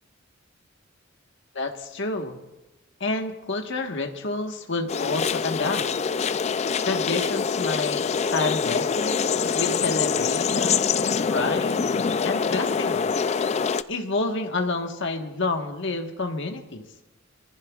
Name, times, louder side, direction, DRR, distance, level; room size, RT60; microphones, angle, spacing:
voice 1, 1.5-2.4 3.0-5.9 6.8-11.0 11.3-11.8 12.2-13.2 13.9-16.8, left 3 dB, 65° left, 4 dB, 1.4 m, -29 dB
sound 1, 4.9-13.8, left 6 dB, 35° left, 0.3 m, -25 dB
24.5 x 15.0 x 2.4 m, 1.0 s
head